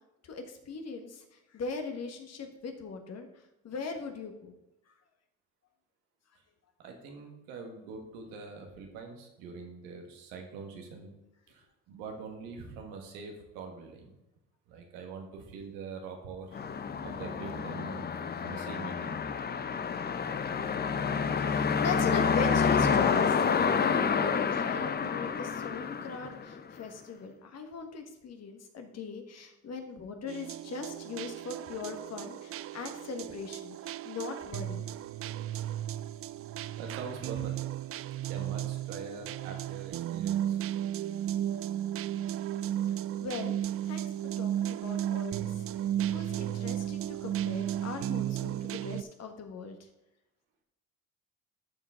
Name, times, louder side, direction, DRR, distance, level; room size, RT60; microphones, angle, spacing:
voice 1, 0.2-1.2 1.5-3.3 3.6-4.5 19.7-23.4 23.8-34.8 43.2-43.6 43.8-44.1 44.4-45.6 46.0-49.8, left 4 dB, 50° left, 5 dB, 1.6 m, -40 dB
voice 2, 6.8-11.1 11.5-14.1 14.7-16.6 17.0-18.0 18.4-19.2 36.8-37.5 38.3-40.6, right 4 dB, 85° right, 3 dB, 1.7 m, -43 dB
sound 1, 16.5-26.8, left 6 dB, 30° left, 0.7 m, -29 dB
sound 2, 30.3-49.0, right 11 dB, 45° right, 0.4 m, -34 dB
12.5 x 4.8 x 3.7 m, 0.90 s
supercardioid pair, 70°, 32 cm